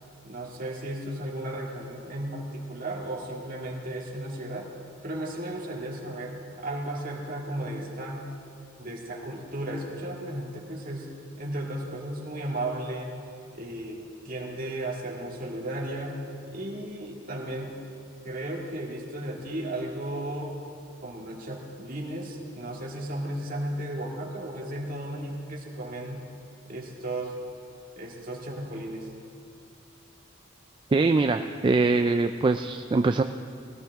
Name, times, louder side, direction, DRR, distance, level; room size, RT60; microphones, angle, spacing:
voice 1, 0.2-4.7 5.0-8.3 8.8-11.1 11.4-13.2 13.5-16.2 16.5-17.8 18.2-20.6 21.0-26.2 26.7-27.4 28.0-29.1, right 1 dB, 45° right, -2 dB, 2.1 m, -35 dB
voice 2, 30.9-33.2, right 3 dB, 25° right, 7 dB, 0.3 m, -23 dB
20.5 x 16.5 x 3.5 m, 2.5 s
head